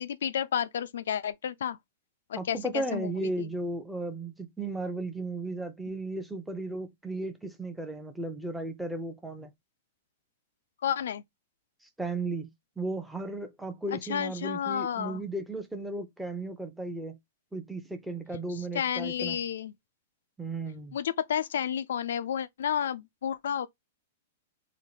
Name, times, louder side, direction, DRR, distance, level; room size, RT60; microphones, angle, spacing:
voice 1, 0.0-1.8 2.3-3.5 10.8-11.2 13.9-15.2 18.5-19.7 20.9-23.7, left 9 dB, 80° left, 0.4 m, -31 dB
voice 2, 2.3-9.5 12.0-12.5 12.8-17.2 17.5-19.4 20.4-21.0, right 2 dB, 5° right, 0.7 m, -35 dB
3.8 x 2.2 x 3.2 m
hypercardioid pair, 130°, 0 cm